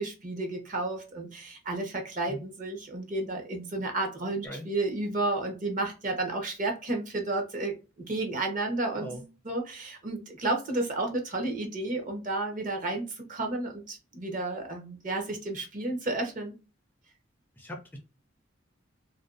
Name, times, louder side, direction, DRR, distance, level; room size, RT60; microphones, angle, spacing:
voice 1, 0.0-16.5, right 2 dB, 40° right, 3 dB, 0.8 m, -32 dB
voice 2, 17.6-18.0, equal, 10° left, 2 dB, 0.4 m, -40 dB
2.5 x 2.2 x 2.4 m, 0.31 s
head